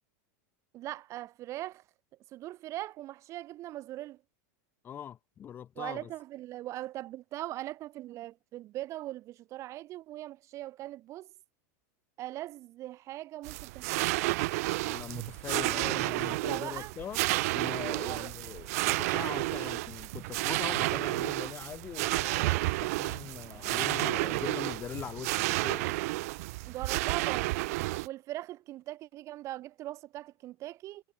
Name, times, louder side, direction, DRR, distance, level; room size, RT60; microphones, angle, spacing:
voice 1, 0.7-1.8 2.3-4.2 5.8-11.3 12.2-14.3 15.7-16.9 18.0-18.3 26.7-27.5 28.0-31.0, right 15 dB, 35° right, 2.0 m, -40 dB
voice 2, 4.8-6.1 14.8-17.2 17.5-26.0, left 9 dB, 20° left, 1.8 m, -42 dB
sound 1, 13.4-28.1, right 22 dB, 60° right, 1.0 m, -31 dB
supercardioid pair, 155°, 9 cm